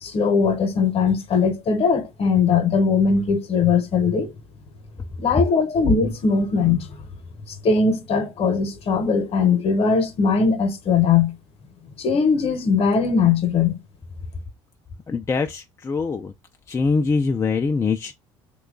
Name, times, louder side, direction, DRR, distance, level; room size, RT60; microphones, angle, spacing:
voice 1, 0.0-4.3 5.2-6.8 7.6-11.3 12.0-13.8, left 5 dB, 45° left, 0.9 m, -20 dB
voice 2, 15.1-16.3 16.7-18.1, left 4 dB, 20° left, 0.4 m, -23 dB
2.9 x 2.3 x 3.6 m
hypercardioid pair, 65°, 14 cm